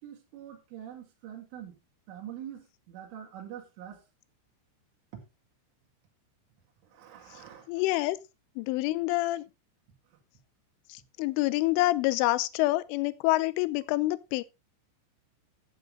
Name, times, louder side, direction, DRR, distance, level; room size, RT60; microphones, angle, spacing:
voice 1, 0.0-1.8 2.1-4.1 5.1-5.2 6.8-8.2 10.1-10.2, right 10 dB, 75° right, 4.3 m, -45 dB
voice 2, 7.7-8.2 8.6-9.5 10.9-14.4, left 19 dB, 80° left, 3.1 m, -27 dB
12.0 x 8.1 x 3.6 m
omnidirectional pair, 5.8 m